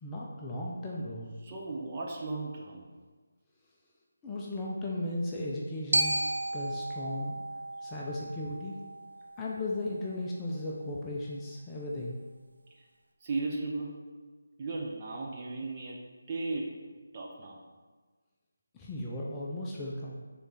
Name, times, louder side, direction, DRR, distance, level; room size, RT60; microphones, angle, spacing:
voice 1, 0.0-1.3 4.2-6.2 6.5-7.4 7.8-8.8 9.4-12.2 18.7-20.2, left 1 dB, 10° left, -5 dB, 0.5 m, -36 dB
voice 2, 1.4-2.9 12.7-12.8 13.2-14.1 14.6-16.0 16.3-16.9 17.1-17.6, right 3 dB, 30° right, -2 dB, 0.7 m, -36 dB
Glockenspiel, 5.9-10.0, right 1 dB, 70° right, 0.6 m, -34 dB
6.6 x 3.7 x 4.1 m, 1.4 s
figure-of-eight pair, 155°, 0 cm